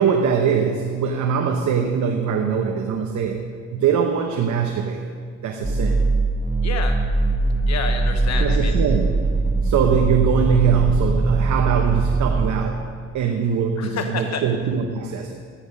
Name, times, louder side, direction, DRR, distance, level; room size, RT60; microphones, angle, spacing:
voice 1, 0.0-5.1 5.4-6.1 8.4-12.9 13.1-15.4, right 6 dB, 70° right, 4 dB, 1.0 m, -22 dB
sound 1, 5.6-12.5, right 3 dB, 20° right, 1.4 m, -21 dB
voice 2, 6.6-7.0 7.6-8.8 13.8-14.5, left 5 dB, 60° left, 5 dB, 1.1 m, -29 dB
13.5 x 10.0 x 5.4 m, 2.1 s
cardioid pair, 90°, 30 cm